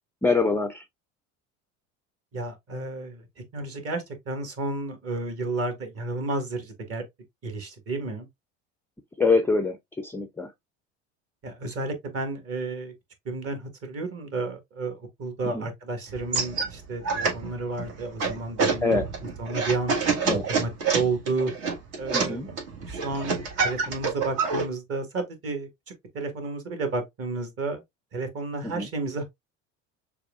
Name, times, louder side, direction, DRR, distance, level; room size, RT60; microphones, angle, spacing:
voice 1, 0.2-0.8 9.2-9.8 10.0-10.5 15.5-15.7 18.8-19.0 20.2-20.4 22.1-22.5 28.6-28.9, left 3 dB, 5° left, 0.4 m, -24 dB
voice 2, 2.3-3.2 3.5-7.0 7.4-8.3 11.4-12.9 13.2-19.0 19.4-20.0 20.4-21.5 22.0-25.7 26.1-27.8 28.1-29.2, right 3 dB, 35° right, 1.5 m, -31 dB
sound 1, 16.1-24.7, right 4 dB, 60° right, 1.6 m, -28 dB
6.5 x 2.4 x 2.3 m
figure-of-eight pair, 70°, 38 cm